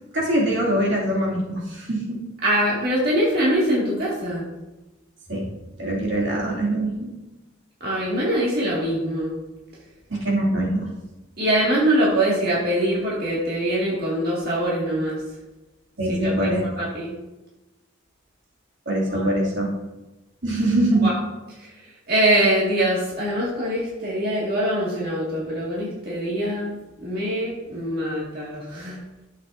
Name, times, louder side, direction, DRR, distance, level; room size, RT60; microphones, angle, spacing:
voice 1, 0.1-2.2 5.3-5.5 5.8-7.1 10.1-10.9 16.0-16.9 18.9-19.7 20.4-21.1, right 1 dB, 70° right, -4 dB, 2.6 m, -23 dB
voice 2, 2.4-4.5 7.8-9.3 11.4-15.2 16.1-16.5 16.8-17.1 19.1-19.3 21.0-21.1 22.1-29.0, right 1 dB, 50° right, -6 dB, 2.2 m, -23 dB
12.5 x 7.5 x 2.7 m, 1.1 s
head